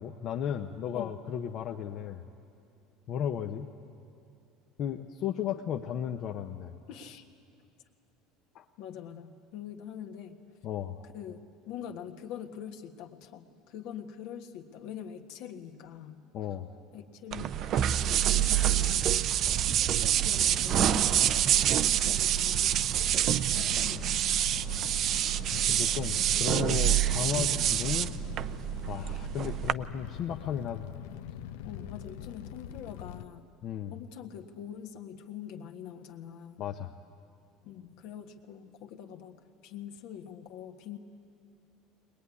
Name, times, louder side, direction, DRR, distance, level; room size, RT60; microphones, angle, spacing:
voice 1, 0.0-2.2 3.1-3.7 4.8-6.7 8.5-8.6 10.6-11.0 16.3-16.7 25.5-28.1 28.4-30.9 33.6-33.9 36.6-36.9, left 9 dB, 45° left, 4 dB, 0.8 m, -35 dB
voice 2, 6.9-7.3 8.8-10.4 11.1-16.2 16.9-19.1 19.8-22.9 23.5-24.1 31.6-33.5 33.9-36.6 37.6-41.0, left 9 dB, 70° left, 5 dB, 1.5 m, -44 dB
sound 1, 17.3-29.7, right 11 dB, 45° right, 0.5 m, -27 dB
Fire, 23.0-33.3, left 10 dB, 90° left, 0.7 m, -43 dB
22.0 x 20.5 x 9.8 m, 2.5 s
cardioid pair, 135°, 0 cm